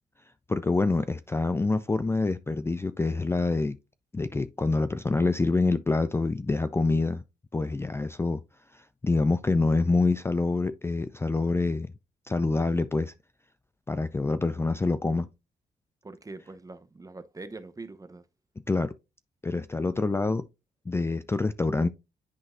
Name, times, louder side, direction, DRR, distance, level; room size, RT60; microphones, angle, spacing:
voice 1, 0.5-3.8 4.1-7.2 7.5-8.4 8.7-11.9 12.3-13.1 13.9-15.3 18.7-18.9 19.4-20.4 20.9-21.9, left 3 dB, 15° left, 0.4 m, -26 dB
voice 2, 16.0-18.2, right 3 dB, 25° right, 0.8 m, -43 dB
10.5 x 3.8 x 2.5 m
cardioid pair, 65°, 15 cm